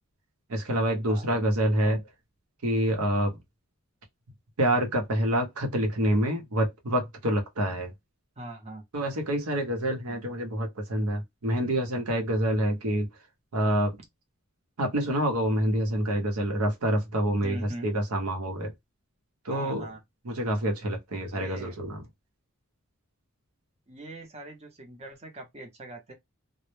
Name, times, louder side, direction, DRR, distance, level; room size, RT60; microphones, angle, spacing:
voice 1, 0.5-2.0 2.6-3.4 4.6-7.9 8.9-13.1 13.5-14.0 14.8-17.6 17.8-18.7 19.4-19.9 20.3-22.0, right 1 dB, 90° right, 0.7 m, -27 dB
voice 2, 8.4-8.8 17.4-17.9 19.5-20.0 21.3-21.8 23.9-26.1, right 1 dB, 30° right, 0.6 m, -42 dB
2.0 x 2.0 x 3.0 m
head